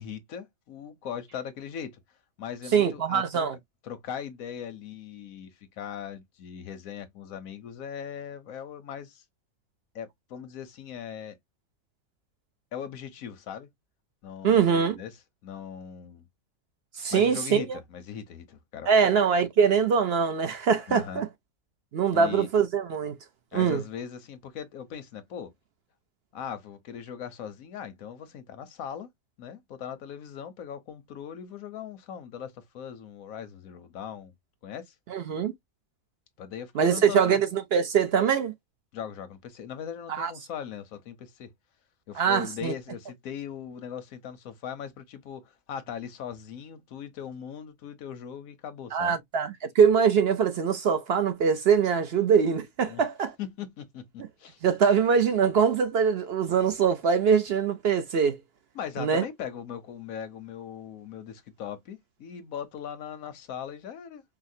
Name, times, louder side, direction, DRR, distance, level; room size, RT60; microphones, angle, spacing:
voice 1, 0.0-2.0 2.4-3.5 3.8-9.2 9.9-11.4 12.7-13.7 14.2-15.2 15.4-16.2 17.1-19.1 20.9-21.2 22.1-22.5 23.5-25.5 26.3-29.1 29.4-34.3 34.6-34.9 36.4-37.4 38.9-41.5 42.1-49.2 52.9-53.0 53.4-54.6 58.7-64.2, left 8 dB, 80° left, 1.2 m, -39 dB
voice 2, 2.7-3.5 14.4-15.0 17.0-17.8 18.9-21.3 21.9-23.2 23.5-23.8 35.1-35.5 36.7-38.5 40.1-40.3 42.1-42.7 48.9-53.3 54.6-58.4 59.0-59.2, right 6 dB, 60° right, 0.7 m, -23 dB
4.9 x 2.0 x 2.6 m
omnidirectional pair, 1.4 m